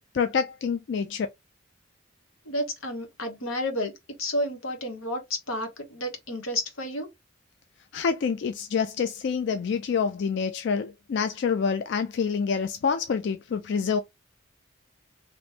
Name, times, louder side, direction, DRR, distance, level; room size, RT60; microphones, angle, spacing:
voice 1, 0.1-1.3 7.9-14.0, left 6 dB, 55° left, 0.3 m, -27 dB
voice 2, 2.4-3.9 4.2-7.1, left 1 dB, 90° left, 1.2 m, -31 dB
3.0 x 2.9 x 3.3 m
head